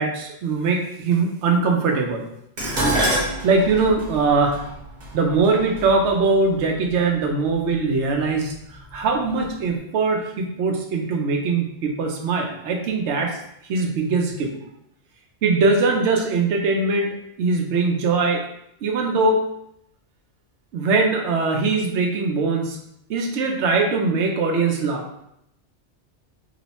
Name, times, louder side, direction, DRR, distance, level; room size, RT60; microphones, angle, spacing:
voice 1, 0.0-2.2 3.4-4.6 5.1-8.5 8.9-13.4 13.7-14.5 15.4-17.1 17.4-18.4 18.8-19.4 20.7-22.8 23.1-25.2, right 3 dB, 80° right, 2 dB, 0.9 m, -21 dB
Dishes pots and pans, 2.6-6.9 7.8-8.2 8.6-9.4 9.7-9.8, right 1 dB, 45° right, 0.9 m, -27 dB
3.0 x 2.0 x 4.1 m, 0.78 s
omnidirectional pair, 1.2 m